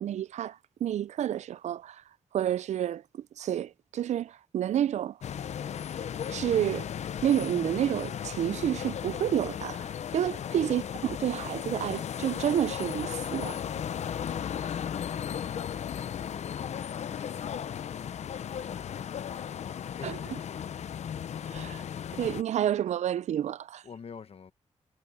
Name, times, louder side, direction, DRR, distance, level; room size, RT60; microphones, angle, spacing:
voice 1, 0.0-2.0 2.3-3.0 3.4-5.2 6.3-6.8 7.2-13.6 20.0-20.1 21.5-21.8 22.1-23.8, right 10 dB, 85° right, 0.4 m, -29 dB
sound 1, 5.2-22.4, left 8 dB, 80° left, 0.6 m, -36 dB
voice 2, 16.0-18.2 18.5-20.8 23.8-24.5, left 6 dB, 60° left, 1.2 m, -50 dB
cardioid pair, 85°, 12 cm